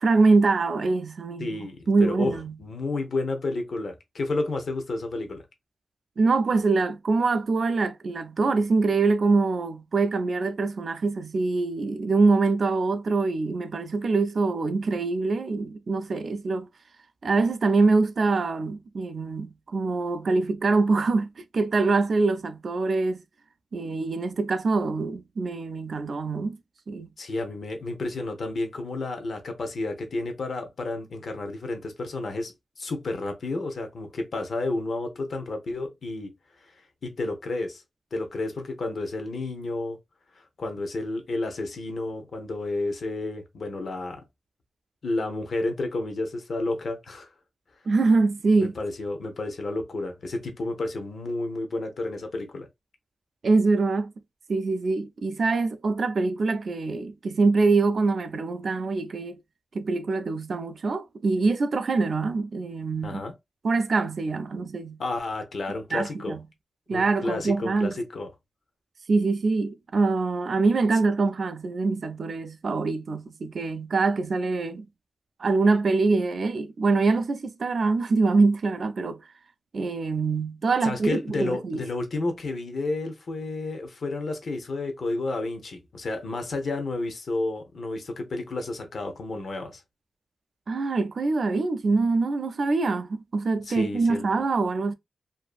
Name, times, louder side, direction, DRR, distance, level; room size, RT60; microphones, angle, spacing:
voice 1, 0.0-2.5 6.2-16.7 17.2-21.3 21.5-23.2 23.7-26.6 26.9-27.1 47.9-48.7 53.4-54.1 54.5-59.4 59.7-63.2 63.6-65.0 65.9-66.4 66.9-67.9 69.1-74.8 75.4-79.2 79.7-81.8 90.7-94.9, right 3 dB, 55° right, 0.3 m, -24 dB
voice 2, 1.4-5.4 27.2-36.3 36.6-36.7 37.0-37.8 38.1-40.0 40.3-44.2 45.0-47.3 48.6-52.7 63.0-63.3 65.0-66.4 66.9-68.3 80.8-89.8 93.6-94.3, left 2 dB, 65° left, 0.7 m, -31 dB
2.6 x 2.5 x 2.3 m
wide cardioid pair, 160°, 0 cm